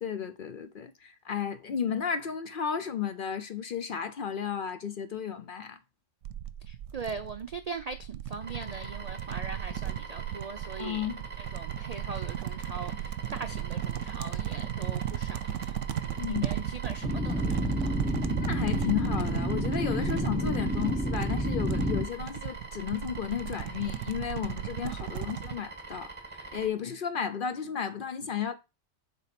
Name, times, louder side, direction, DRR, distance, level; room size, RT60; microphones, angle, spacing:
voice 1, 0.0-5.8 10.8-11.2 16.2-16.5 18.4-28.5, left 8 dB, 55° left, 0.7 m, -33 dB
sound 1, 6.2-25.6, right 11 dB, 85° right, 0.9 m, -36 dB
voice 2, 6.7-11.1 11.5-18.0, right 4 dB, 60° right, 0.4 m, -41 dB
sound 2, 8.4-26.7, right 3 dB, 25° right, 1.7 m, -44 dB
sound 3, 17.0-22.0, equal, 5° right, 0.8 m, -30 dB
7.3 x 3.8 x 5.8 m
omnidirectional pair, 1.3 m